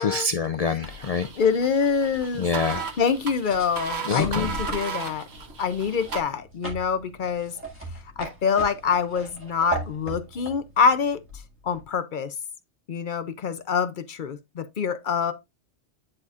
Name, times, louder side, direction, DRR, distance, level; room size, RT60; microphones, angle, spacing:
voice 1, 0.0-1.3 2.4-2.9 4.1-4.6, left 4 dB, 75° left, 0.3 m, -26 dB
sound 1, 0.8-11.9, right 2 dB, 10° right, 1.9 m, -39 dB
sound 2, 0.8-6.2, right 5 dB, 65° right, 1.3 m, -35 dB
voice 2, 1.4-2.5 3.0-5.3 5.6-7.5 8.2-11.2 11.6-12.3 12.9-15.3, left 6 dB, 50° left, 0.7 m, -25 dB
9.8 x 4.0 x 2.4 m
omnidirectional pair, 1.2 m